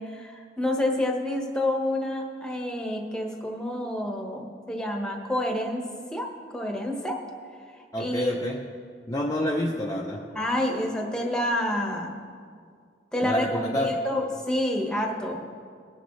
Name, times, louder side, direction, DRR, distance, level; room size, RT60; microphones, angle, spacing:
voice 1, 0.0-5.9 6.1-7.1 8.0-8.4 10.3-12.1 13.1-13.5 13.8-15.4, left 1 dB, 5° left, 1 dB, 1.2 m, -28 dB
voice 2, 7.9-8.6 9.1-10.2 13.2-14.0, left 1 dB, 20° left, -2 dB, 0.7 m, -28 dB
20.0 x 6.9 x 3.2 m, 2.1 s
head